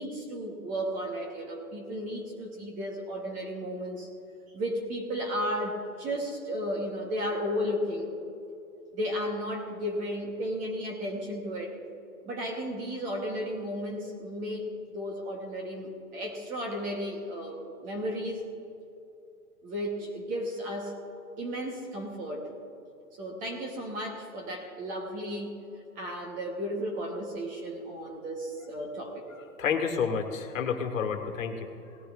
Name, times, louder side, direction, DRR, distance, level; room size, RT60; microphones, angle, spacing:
voice 1, 0.0-4.1 4.5-8.1 8.9-11.8 12.2-18.4 19.6-21.0 21.4-22.5 23.1-25.5 26.0-29.3, equal, 20° right, 2 dB, 1.1 m, -34 dB
voice 2, 29.6-32.0, left 6 dB, 60° left, 4 dB, 1.7 m, -30 dB
18.0 x 14.0 x 2.5 m, 2.8 s
hypercardioid pair, 150°, 44 cm